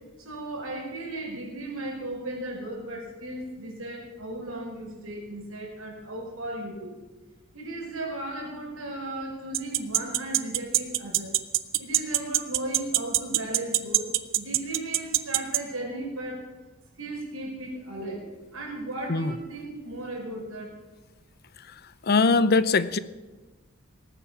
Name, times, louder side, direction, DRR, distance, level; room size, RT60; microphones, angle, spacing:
voice 1, 0.2-7.0 7.5-11.4 11.8-14.1 14.3-16.5 17.0-18.3 18.5-20.7, right 1 dB, 90° right, 0 dB, 5.5 m, -36 dB
sound 1, 9.5-15.6, right 15 dB, 65° right, 0.7 m, -22 dB
voice 2, 22.0-23.0, left 4 dB, 50° left, 16 dB, 0.6 m, -21 dB
19.0 x 9.2 x 7.2 m, 1.2 s
head